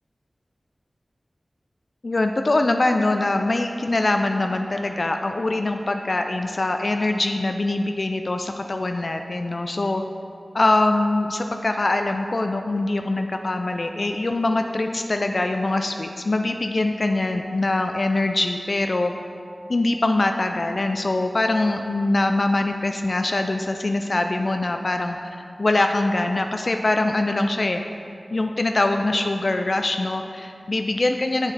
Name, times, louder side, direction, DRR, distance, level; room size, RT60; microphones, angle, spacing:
voice 1, 2.0-10.0 10.5-19.2 19.7-25.2 25.6-27.8 28.3-31.5, left 2 dB, 55° left, 5 dB, 0.3 m, -23 dB
7.6 x 7.2 x 3.3 m, 2.4 s
wide cardioid pair, 65°, 0 cm